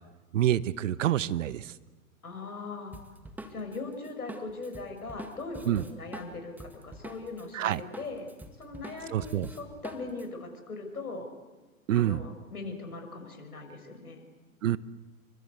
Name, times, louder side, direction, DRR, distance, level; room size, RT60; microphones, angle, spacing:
voice 1, 0.3-1.7 5.6-5.8 7.5-7.8 9.1-9.5 11.9-12.2 14.6-14.8, right 12 dB, 60° right, 17 dB, 1.0 m, -27 dB
voice 2, 2.2-3.0 3.5-8.3 8.6-11.3 11.9-14.2, left 3 dB, 85° left, 6 dB, 5.9 m, -40 dB
Drum kit, 2.9-7.4 7.7-10.3, right 1 dB, 5° right, 1.9 m, -45 dB
29.5 x 24.5 x 8.2 m, 1.2 s
hypercardioid pair, 120°, 43 cm